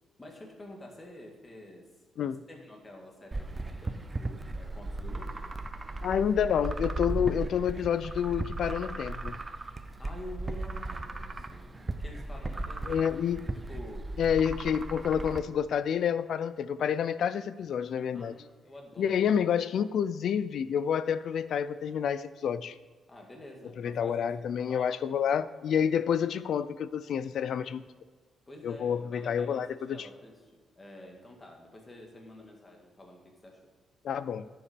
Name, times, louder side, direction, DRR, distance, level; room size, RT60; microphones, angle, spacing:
voice 1, 0.2-1.9 2.2-5.4 10.0-13.1 13.5-14.1 18.1-19.3 23.1-24.9 28.5-33.6, left 1 dB, 20° left, 0 dB, 1.9 m, -48 dB
sound 1, 3.3-15.4, right 2 dB, 20° right, 0.6 m, -36 dB
voice 2, 6.0-9.4 12.9-13.4 14.2-18.3 19.0-22.8 23.8-27.8 28.6-30.1 34.0-34.5, left 8 dB, 65° left, 15 dB, 0.4 m, -29 dB
10.0 x 7.0 x 5.2 m, 1.4 s
cardioid pair, 135°, 0 cm